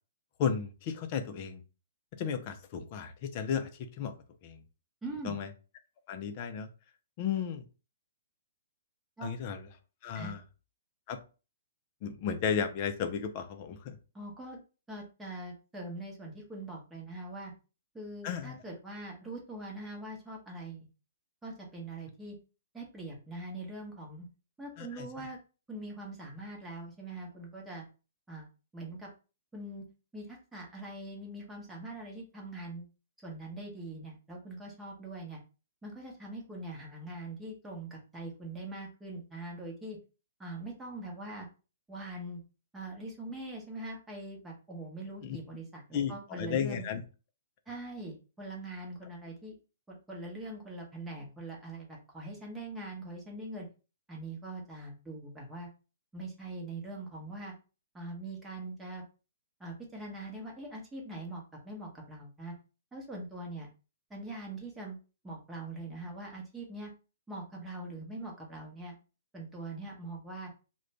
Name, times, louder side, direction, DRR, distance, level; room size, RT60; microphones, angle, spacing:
voice 1, 0.4-1.6 2.2-3.7 4.0-4.1 4.4-4.6 5.2-5.5 6.1-6.7 7.2-7.6 9.2-9.7 10.0-10.4 11.1-11.2 12.0-14.0 18.2-18.5 24.8-25.3 45.2-45.4 45.9-47.0, left 7 dB, 40° left, 7 dB, 0.5 m, -34 dB
voice 2, 5.0-5.4 9.2-9.3 10.1-10.3 14.1-14.6 14.9-17.5 17.9-20.9 21.4-22.4 22.7-24.3 24.6-25.4 25.7-27.8 28.3-28.5 28.7-29.1 29.5-29.8 30.1-32.9 33.2-35.4 35.8-40.0 40.4-41.5 41.9-42.4 42.7-46.9 47.7-49.6 49.9-53.7 54.1-55.7 56.1-57.5 57.9-59.0 59.6-62.5 62.9-63.7 64.1-65.0 65.2-66.9 67.3-69.0 69.3-70.5, right 2 dB, 10° right, -2 dB, 0.9 m, -42 dB
2.4 x 2.2 x 3.1 m, 0.33 s
figure-of-eight pair, 125°, 0 cm